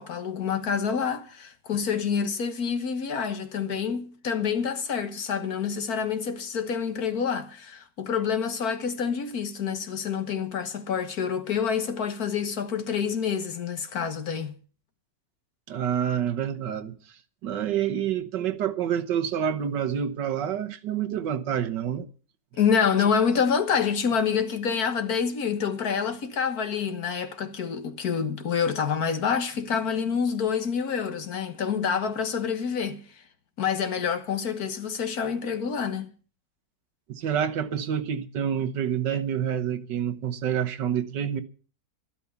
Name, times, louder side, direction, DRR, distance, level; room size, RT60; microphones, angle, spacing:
voice 1, 0.0-14.5 22.6-33.0 33.6-36.1, left 6 dB, 60° left, 1.8 m, -27 dB
voice 2, 15.7-17.0 17.4-22.1 37.1-41.4, right 9 dB, 80° right, 1.7 m, -28 dB
13.0 x 12.0 x 7.0 m
omnidirectional pair, 1.9 m